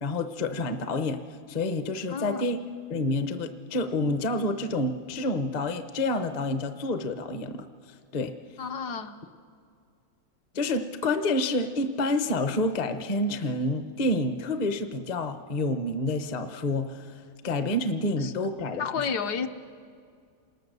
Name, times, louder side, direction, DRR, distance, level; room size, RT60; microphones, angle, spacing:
voice 1, 0.0-1.2 1.5-2.6 2.9-7.7 8.1-8.4 10.5-19.1, left 2 dB, 40° left, 9 dB, 0.6 m, -28 dB
voice 2, 2.1-2.5 8.6-9.2 18.2-18.3 18.8-19.5, left 6 dB, 65° left, 7 dB, 1.3 m, -31 dB
27.5 x 19.5 x 6.8 m, 2.3 s
omnidirectional pair, 2.0 m